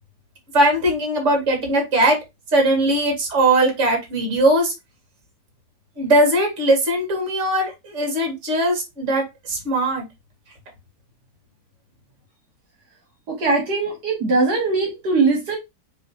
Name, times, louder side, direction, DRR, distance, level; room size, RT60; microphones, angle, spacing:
voice 1, 0.5-2.2 2.5-4.7 6.0-10.0, right 1 dB, 45° right, 2 dB, 1.8 m, -19 dB
voice 2, 13.3-15.6, right 3 dB, 70° right, 0 dB, 1.7 m, -20 dB
4.7 x 3.1 x 2.8 m, 0.21 s
omnidirectional pair, 1.8 m